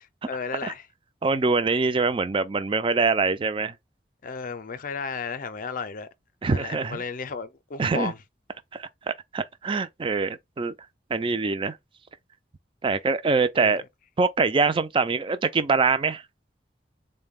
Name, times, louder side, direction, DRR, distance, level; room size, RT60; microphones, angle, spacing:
voice 1, 0.3-0.9 4.2-6.1 6.5-8.2 13.6-13.7, left 5 dB, 50° left, 0.5 m, -33 dB
voice 2, 1.2-3.7 6.4-7.0 7.8-8.1 8.7-10.7 11.1-11.8 12.8-13.8 14.2-16.2, right 4 dB, 30° right, 0.4 m, -24 dB
3.9 x 2.2 x 3.5 m
head